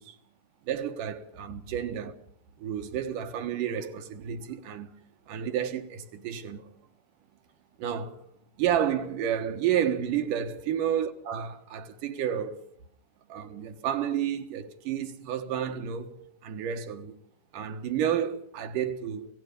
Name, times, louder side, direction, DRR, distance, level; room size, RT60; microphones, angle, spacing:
voice 1, 0.7-2.1 2.6-4.9 5.3-6.6 7.8-8.2 8.6-12.6 13.3-17.2 17.5-19.2, right 9 dB, 85° right, 3.0 m, -30 dB
28.5 x 18.0 x 5.4 m
omnidirectional pair, 3.7 m